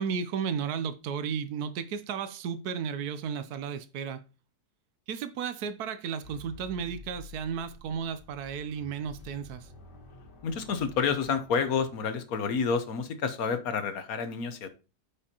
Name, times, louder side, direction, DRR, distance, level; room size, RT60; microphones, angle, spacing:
voice 1, 0.0-4.2 5.1-9.7, right 7 dB, 75° right, 1.1 m, -34 dB
sound 1, 6.2-12.4, left 2 dB, 85° left, 2.3 m, -50 dB
voice 2, 10.4-14.7, left 6 dB, 65° left, 1.2 m, -29 dB
8.4 x 5.2 x 2.8 m
omnidirectional pair, 1.8 m